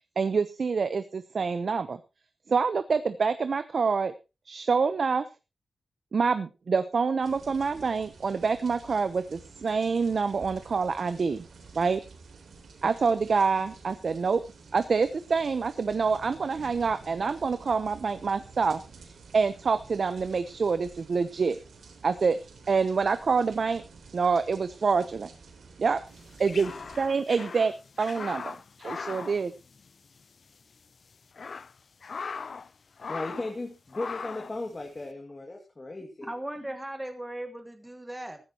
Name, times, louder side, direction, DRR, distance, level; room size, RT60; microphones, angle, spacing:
voice 1, 0.2-2.0 2.5-4.1 4.5-5.2 6.1-11.4 11.7-12.0 12.8-14.4 14.7-18.8 19.3-21.6 22.0-22.4 22.7-23.8 24.1-25.3 25.8-26.0 26.4-26.7 27.0-27.7 28.0-29.5, right 5 dB, 50° right, 12 dB, 0.8 m, -26 dB
sound 1, 7.2-27.1, right 4 dB, 80° right, 3.5 m, -51 dB
sound 2, 26.2-30.2 30.5-30.6 31.1-32.7 33.0-33.6 33.9-34.6, left 5 dB, 50° left, 0.6 m, -39 dB
voice 2, 33.1-36.3, left 2 dB, 25° left, 2 dB, 2.3 m, -36 dB
voice 3, 36.2-38.4, right 1 dB, 10° right, 7 dB, 1.5 m, -37 dB
15.5 x 14.0 x 3.0 m, 0.28 s
wide cardioid pair, 165°, 0 cm